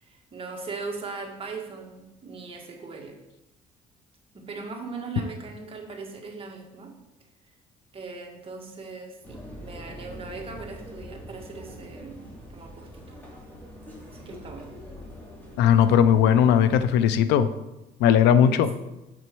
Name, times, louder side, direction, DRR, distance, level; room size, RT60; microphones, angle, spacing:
voice 1, 0.0-3.2 4.3-6.9 7.9-13.1 14.1-14.7 18.4-18.6, right 4 dB, 35° right, 1 dB, 1.6 m, -39 dB
sound 1, 9.2-16.8, equal, 10° left, 2.5 m, -43 dB
voice 2, 15.6-17.5 18.0-18.7, left 9 dB, 90° left, 13 dB, 0.5 m, -18 dB
7.0 x 6.1 x 4.6 m, 0.95 s
cardioid pair, 110°, 17 cm